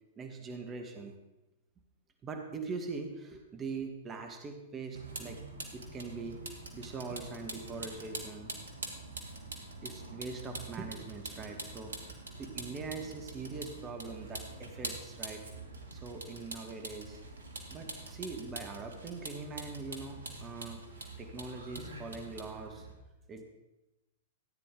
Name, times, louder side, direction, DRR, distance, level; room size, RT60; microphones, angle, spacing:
voice 1, 0.2-1.1 2.2-5.4 5.7-8.5 9.8-11.9 12.4-15.4 15.9-17.2 17.7-20.8 21.2-22.9 23.3-23.4, right 4 dB, 25° right, 4 dB, 1.4 m, -42 dB
Vehicle, 4.9-22.9, right 2 dB, 75° right, 1.8 m, -45 dB
14.0 x 9.3 x 3.7 m, 0.99 s
figure-of-eight pair, 105°, 0 cm